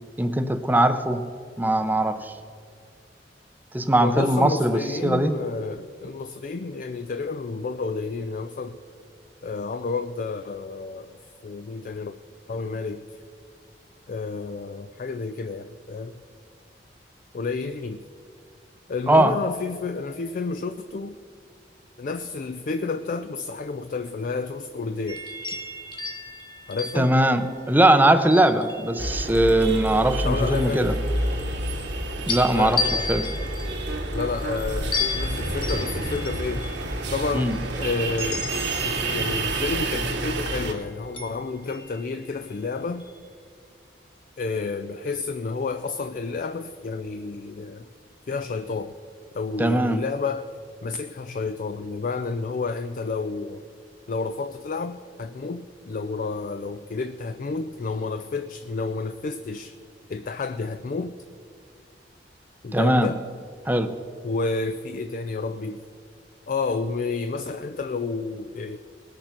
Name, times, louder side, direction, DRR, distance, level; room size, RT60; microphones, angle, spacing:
voice 1, 0.2-1.2 1.6-2.3 3.7-5.3 19.1-19.4 27.0-30.9 32.3-32.8 33.1-33.3 37.3-37.6 49.6-50.0 62.7-63.1 63.7-63.9, right 1 dB, 10° right, 9 dB, 0.6 m, -20 dB
voice 2, 4.0-8.8 9.4-11.2 11.4-12.1 12.5-13.0 14.1-16.1 17.3-18.0 18.9-21.2 22.0-25.2 26.7-27.2 30.2-30.8 32.5-33.1 34.1-36.7 37.1-38.5 38.8-43.1 44.4-47.9 48.3-48.9 49.3-50.5 50.8-53.6 54.1-59.7 60.1-61.1 62.6-63.2 64.2-65.8 66.5-68.8, left 4 dB, 50° left, 10 dB, 0.4 m, -30 dB
sound 1, 25.1-29.4 30.0-31.9 32.3-39.2 41.1-42.6 43.0-43.3, left 4 dB, 25° left, 1.2 m, -35 dB
sound 2, 29.0-40.7, right 2 dB, 85° right, 1.9 m, -29 dB
sound 3, 38.2-42.2, equal, 65° left, 2.8 m, -40 dB
19.5 x 6.8 x 5.8 m, 2.2 s
head